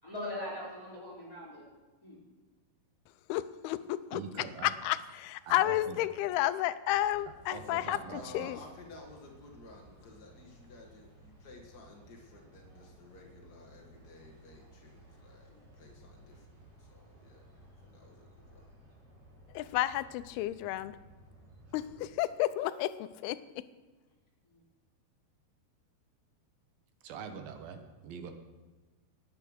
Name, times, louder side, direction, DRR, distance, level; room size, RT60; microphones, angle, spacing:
voice 1, 0.0-1.7 2.0-2.2 15.5-15.7 24.5-24.6, left 1 dB, 10° left, -6 dB, 4.6 m, -41 dB
voice 2, 3.3-4.2 4.6-8.6 19.5-21.0 21.7-23.6, left 14 dB, 80° left, 15 dB, 2.4 m, -32 dB
voice 3, 4.1-4.7 5.5-6.0 7.5-8.5 27.0-28.3, right 6 dB, 70° right, 6 dB, 2.9 m, -44 dB
sound 1, 6.9-22.1, right 1 dB, 40° right, 6.1 m, -57 dB
voice 4, 8.0-17.5 17.8-18.7, left 3 dB, 60° left, 0 dB, 1.0 m, -54 dB
19.5 x 8.9 x 6.5 m, 1.2 s
omnidirectional pair, 4.7 m